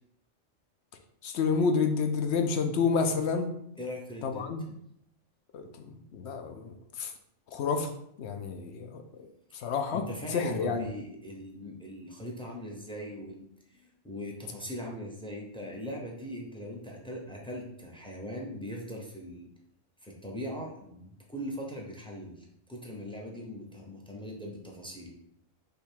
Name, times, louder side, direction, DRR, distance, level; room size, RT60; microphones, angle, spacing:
voice 1, 1.2-3.5 4.2-4.6 5.5-5.7 6.1-7.1 7.5-7.9 8.2-9.0 9.6-10.0 10.3-10.9, left 5 dB, 65° left, 6 dB, 0.8 m, -29 dB
voice 2, 3.8-4.5 9.9-13.4 13.7-19.5 20.0-22.3 22.7-25.1, equal, 5° left, -1 dB, 0.6 m, -40 dB
5.1 x 2.3 x 4.4 m, 0.74 s
omnidirectional pair, 1.3 m